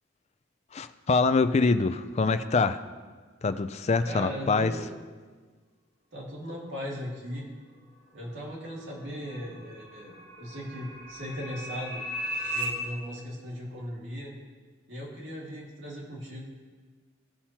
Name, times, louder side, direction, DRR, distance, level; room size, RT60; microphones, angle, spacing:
voice 1, 0.7-2.8 3.4-4.7, left 4 dB, 35° left, 11 dB, 0.3 m, -24 dB
voice 2, 4.1-4.9 6.1-7.5 8.1-12.0 12.5-14.3 14.9-16.4, equal, 70° right, -4 dB, 2.3 m, -38 dB
sound 1, 8.3-12.7, equal, 50° right, 3.0 m, -37 dB
17.0 x 5.7 x 2.9 m, 1.5 s
head